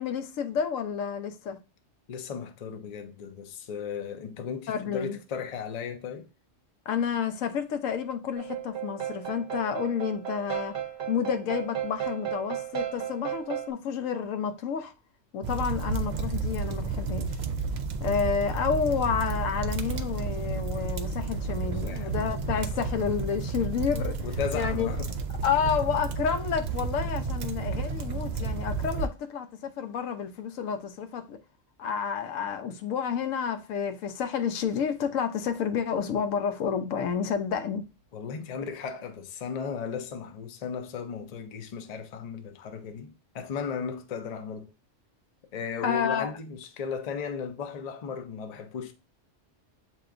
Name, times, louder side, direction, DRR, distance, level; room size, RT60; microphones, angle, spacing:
voice 1, 0.0-1.6 4.7-5.2 6.9-10.7 11.1-14.9 15.3-17.3 18.0-24.2 24.5-24.9 25.4-31.4 31.8-37.8 45.8-46.3, left 7 dB, 85° left, 1.0 m, -30 dB
voice 2, 2.1-6.3 21.6-22.2 24.2-25.1 38.1-44.7 45.5-48.9, left 6 dB, 50° left, 0.5 m, -36 dB
sound 1, 8.4-13.7, right 11 dB, 55° right, 0.8 m, -35 dB
sound 2, 15.4-29.1, right 4 dB, 90° right, 0.4 m, -31 dB
7.6 x 2.8 x 2.5 m
omnidirectional pair, 1.3 m